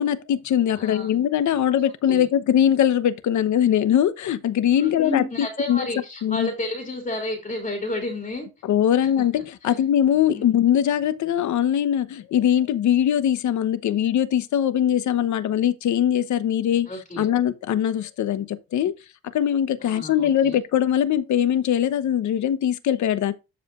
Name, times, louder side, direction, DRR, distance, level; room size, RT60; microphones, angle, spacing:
voice 1, 0.0-5.2 5.7-5.9 6.2-6.5 8.6-16.9 17.2-18.9 19.3-23.3, left 10 dB, 70° left, 1.0 m, -21 dB
voice 2, 0.7-1.2 2.1-2.2 4.7-8.5 9.0-9.3 9.6-9.7 10.3-10.6 16.9-17.3 19.8-20.6, left 1 dB, 25° left, 3.1 m, -31 dB
12.0 x 5.0 x 2.5 m
cardioid pair, 90°, 30 cm